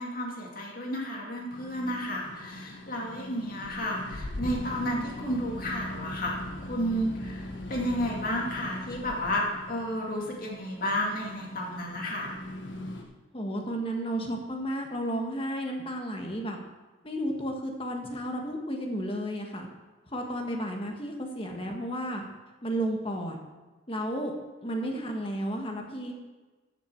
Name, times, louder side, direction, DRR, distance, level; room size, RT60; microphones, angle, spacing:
voice 1, 0.0-6.4 6.7-12.3, equal, 45° left, -1 dB, 2.3 m, -32 dB
sound 1, 1.5-13.0, left 1 dB, 75° left, 1.3 m, -40 dB
voice 2, 13.3-16.6 17.0-19.7 20.1-22.2 22.6-23.4 23.9-24.3 24.6-26.1, right 1 dB, 30° left, 2 dB, 1.4 m, -32 dB
13.5 x 6.9 x 4.5 m, 1.2 s
head